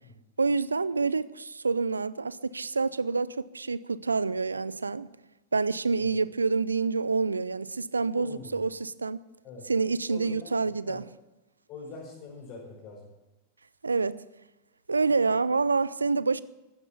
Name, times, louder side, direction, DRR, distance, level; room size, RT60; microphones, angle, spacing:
voice 1, 0.4-5.1 5.5-9.2 9.7-11.0 13.8-14.2 14.9-16.4, right 4 dB, 75° right, 0.5 m, -27 dB
voice 2, 8.1-8.6 9.4-9.6 10.1-10.6 10.8-11.0 11.7-13.1, left 4 dB, 40° left, 5.6 m, -43 dB
15.5 x 12.0 x 7.1 m
figure-of-eight pair, 90°, 0 cm